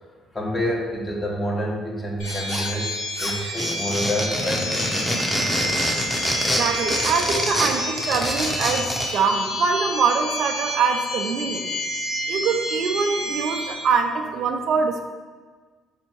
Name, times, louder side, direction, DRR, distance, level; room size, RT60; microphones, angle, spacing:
voice 1, 0.3-2.9 3.2-5.0, equal, 30° left, -2 dB, 1.2 m, -28 dB
sound 1, 2.2-13.7, equal, 85° left, 1.2 m, -29 dB
sound 2, 2.3-2.9 3.2-9.1, equal, 5° left, 0.8 m, -26 dB
voice 2, 6.6-11.7 12.3-15.1, right 5 dB, 65° right, 5 dB, 0.4 m, -23 dB
4.2 x 2.7 x 4.5 m, 1.5 s
hypercardioid pair, 60°, 0 cm